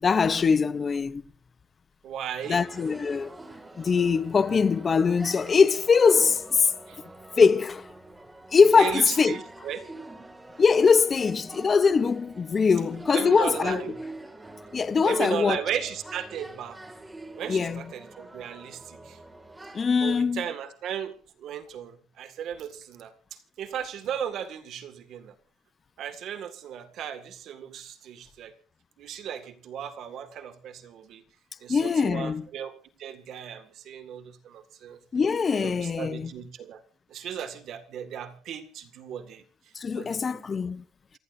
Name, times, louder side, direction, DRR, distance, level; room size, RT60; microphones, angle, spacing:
voice 1, 0.0-1.2 2.5-3.4 3.8-6.7 7.4-7.9 8.5-9.4 10.6-13.8 14.7-15.6 17.5-17.9 19.7-20.4 31.7-32.5 35.1-36.3 39.8-40.8, left 5 dB, 25° left, 0.6 m, -22 dB
voice 2, 2.0-2.7 6.9-7.0 8.7-9.9 13.1-14.0 15.0-16.8 17.4-19.2 20.0-21.1 21.4-25.3 26.0-28.5 29.0-31.2 31.6-32.7 33.0-35.0 35.5-36.8 37.1-39.4 39.9-40.4, right 9 dB, 50° right, 1.9 m, -36 dB
sound 1, 2.4-19.8, right 2 dB, 10° right, 2.2 m, -45 dB
28.0 x 16.5 x 2.6 m
cardioid pair, 170°, 0 cm